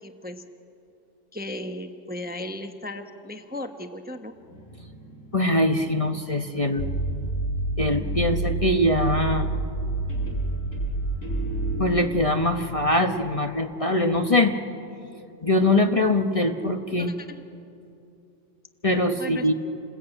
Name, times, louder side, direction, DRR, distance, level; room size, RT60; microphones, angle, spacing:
voice 1, 0.0-0.4 1.3-4.3 17.0-17.4 19.2-19.5, left 1 dB, 10° right, 6 dB, 0.9 m, -36 dB
Guitar, 4.3-7.9 9.5-9.8 10.1-13.0, right 1 dB, 80° left, 5.5 m, -41 dB
voice 2, 5.3-6.9 7.8-9.5 11.8-14.5 15.4-17.1 18.8-19.5, left 1 dB, 30° left, 5 dB, 1.0 m, -22 dB
sound 1, 6.8-11.9, right 2 dB, 55° left, 3.7 m, -28 dB
28.5 x 20.5 x 9.0 m, 2.7 s
omnidirectional pair, 1.3 m